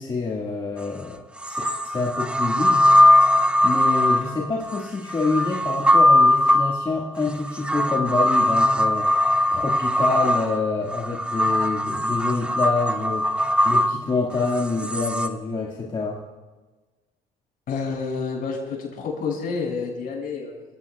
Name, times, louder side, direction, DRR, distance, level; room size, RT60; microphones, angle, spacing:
voice 1, 0.0-2.8 3.6-9.1 9.5-13.3 13.6-16.2, left 3 dB, 30° left, -3 dB, 1.9 m, -27 dB
sound 1, 0.8-0.9 1.4-15.3, left 1 dB, 5° right, 0.8 m, -20 dB
voice 2, 17.7-20.6, left 5 dB, 60° left, -1 dB, 6.4 m, -29 dB
27.5 x 16.5 x 2.4 m, 1.3 s
cardioid pair, 110°, 17 cm